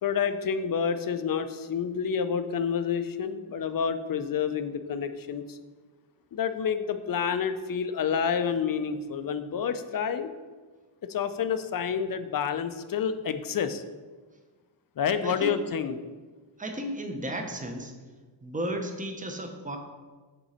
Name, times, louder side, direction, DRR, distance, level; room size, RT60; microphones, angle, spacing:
voice 1, 0.0-5.6 6.3-10.3 11.0-13.8 15.0-16.0, left 7 dB, 50° left, 10 dB, 0.4 m, -29 dB
voice 2, 16.6-17.9 18.4-19.8, right 1 dB, 15° right, 5 dB, 0.6 m, -34 dB
7.9 x 3.7 x 4.2 m, 1.4 s
wide cardioid pair, 145°, 48 cm